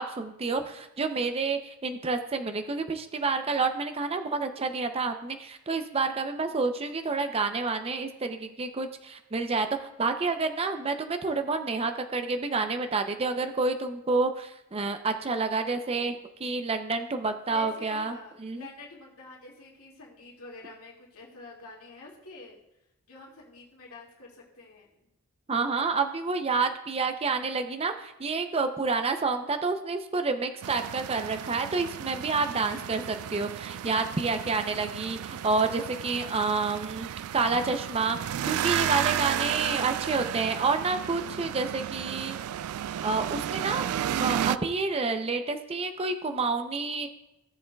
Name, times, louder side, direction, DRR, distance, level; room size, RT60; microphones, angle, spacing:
voice 1, 0.0-18.7 25.5-37.1 37.3-42.4 43.0-43.9 44.2-47.1, right 4 dB, 25° right, 7 dB, 0.5 m, -29 dB
voice 2, 17.5-22.6 23.1-25.1, left 3 dB, 80° left, -3 dB, 2.2 m, -47 dB
sound 1, 30.6-44.6, right 10 dB, 85° right, 0.3 m, -33 dB
17.0 x 7.0 x 2.3 m, 0.89 s
head